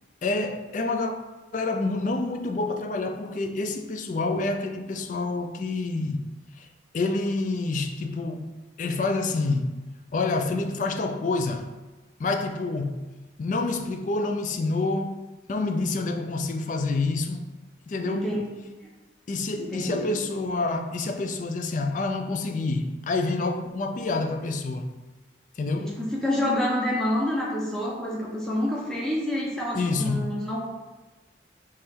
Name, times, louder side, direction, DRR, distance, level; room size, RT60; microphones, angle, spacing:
voice 1, 0.2-1.1 1.5-6.2 6.6-6.7 6.9-8.5 8.8-9.8 10.1-11.7 12.2-13.1 13.4-15.2 15.5-17.5 17.9-18.3 19.3-24.9 25.6-26.0 29.7-30.3, left 3 dB, 40° left, 0.3 m, -27 dB
voice 2, 18.0-18.4 19.6-20.1 25.8-30.6, left 1 dB, 5° left, 0.8 m, -27 dB
4.4 x 3.2 x 3.5 m
head